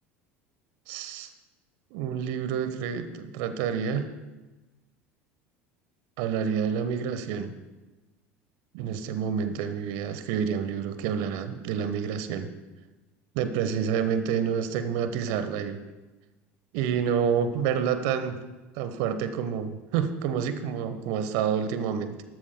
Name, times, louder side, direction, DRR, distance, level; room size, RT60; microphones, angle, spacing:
voice 1, 0.9-1.3 1.9-4.1 6.2-7.5 8.7-12.5 13.3-15.8 16.7-18.4 18.7-22.2, right 7 dB, 60° right, 10 dB, 1.1 m, -28 dB
20.5 x 12.5 x 2.2 m, 1.2 s
figure-of-eight pair, 70°, 7 cm